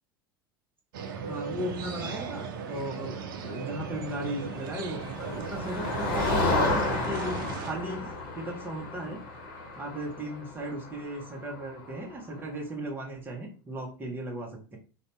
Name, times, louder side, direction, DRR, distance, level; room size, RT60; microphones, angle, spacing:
sound 1, 0.9-7.7, right 6 dB, 70° right, 0.5 m, -37 dB
voice 1, 1.1-9.2 9.8-14.8, right 1 dB, 20° right, 0 dB, 0.8 m, -36 dB
Motor vehicle (road), 4.4-12.1, left 2 dB, 60° left, 0.9 m, -32 dB
2.6 x 2.2 x 3.1 m, 0.36 s
hypercardioid pair, 80°, 12 cm